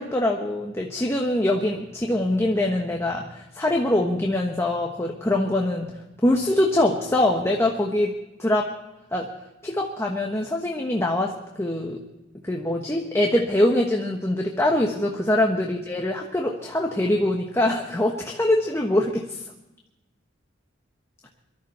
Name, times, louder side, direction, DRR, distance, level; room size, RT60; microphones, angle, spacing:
voice 1, 0.0-8.7 9.1-9.3 9.6-12.0 12.4-19.5, left 1 dB, 15° left, 1 dB, 1.2 m, -23 dB
23.0 x 13.5 x 4.3 m, 0.97 s
head